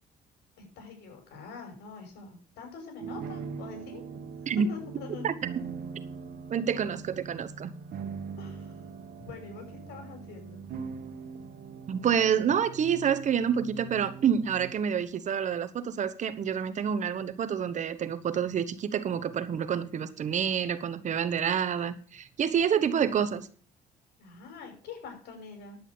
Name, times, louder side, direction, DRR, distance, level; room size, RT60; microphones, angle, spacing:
voice 1, 0.6-4.0 4.7-5.3 8.4-8.7 9.2-10.6 24.2-25.8, left 5 dB, 75° left, 6.0 m, -45 dB
sound 1, 3.0-14.7, right 6 dB, 60° right, 1.5 m, -41 dB
voice 2, 6.5-7.7 11.9-23.5, right 8 dB, 45° right, 1.1 m, -28 dB
10.5 x 8.4 x 5.3 m
cardioid pair, 110°, 17 cm